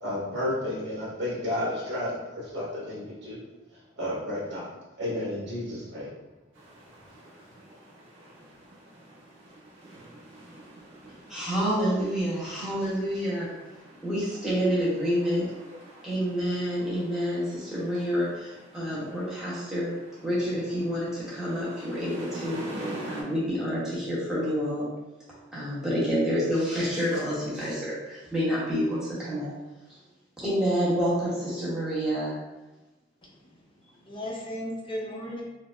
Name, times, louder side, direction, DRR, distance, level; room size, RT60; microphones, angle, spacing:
voice 1, 0.0-3.4 4.0-4.7 5.0-6.1, left 1 dB, 60° right, -6 dB, 1.2 m, -32 dB
sound 1, 6.5-23.2, right 1 dB, 75° right, 0.9 m, -45 dB
voice 2, 11.3-13.5 14.0-15.5 16.0-19.9 20.2-22.6 23.0-24.9 25.2-29.5 30.4-32.4, equal, 5° right, -9 dB, 0.9 m, -28 dB
voice 3, 33.2-33.6 34.0-35.4, equal, 25° left, -3 dB, 0.6 m, -36 dB
4.3 x 2.0 x 2.4 m, 1.1 s
head